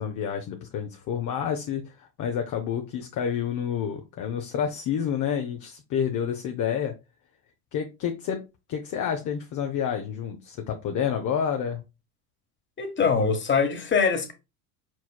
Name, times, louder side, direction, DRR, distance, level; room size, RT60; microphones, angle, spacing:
voice 1, 0.0-7.0 7.7-8.4 8.7-11.8, left 8 dB, 40° left, 0.7 m, -29 dB
voice 2, 12.8-14.3, left 5 dB, 25° left, 1.3 m, -23 dB
4.5 x 4.3 x 2.2 m
supercardioid pair, 90°, 45 cm